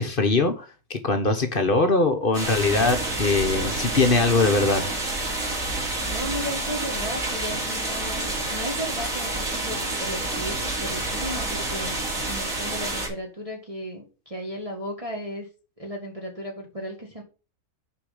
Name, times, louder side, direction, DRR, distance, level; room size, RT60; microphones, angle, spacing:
voice 1, 0.0-4.8, left 3 dB, 40° left, 7 dB, 1.2 m, -22 dB
sound 1, 2.3-13.1, right 2 dB, 55° right, 3.5 m, -28 dB
voice 2, 6.0-12.0 12.3-15.5 15.8-17.2, equal, 20° right, -1 dB, 1.9 m, -35 dB
6.6 x 5.5 x 6.6 m, 0.33 s
omnidirectional pair, 1.7 m